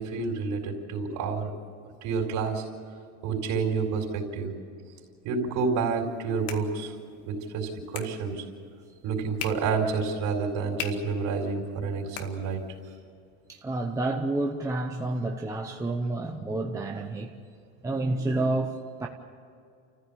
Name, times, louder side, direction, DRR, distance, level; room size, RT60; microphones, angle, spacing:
voice 1, 0.0-1.5 2.0-2.6 3.2-4.5 5.2-6.9 7.3-8.4 9.0-12.6, right 5 dB, 45° right, 2 dB, 4.5 m, -29 dB
sound 1, 5.9-13.0, left 8 dB, 85° left, 2.1 m, -44 dB
voice 2, 13.5-17.3 17.8-19.1, right 2 dB, 5° right, 1 dB, 0.8 m, -29 dB
29.5 x 15.0 x 8.6 m, 2.4 s
cardioid pair, 165°, 43 cm